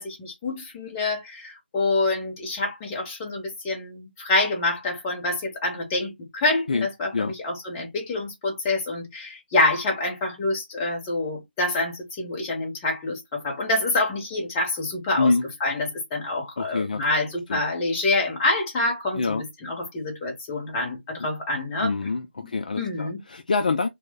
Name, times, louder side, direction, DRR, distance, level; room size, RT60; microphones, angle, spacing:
voice 1, 0.0-15.3 15.6-21.9 22.4-22.5 22.8-23.2, left 2 dB, 15° left, 0.7 m, -27 dB
voice 2, 16.6-17.0 17.5-17.6 19.2-19.4 21.8-23.9, left 3 dB, 45° left, 0.3 m, -25 dB
3.0 x 2.1 x 3.3 m
figure-of-eight pair, 155°, 6 cm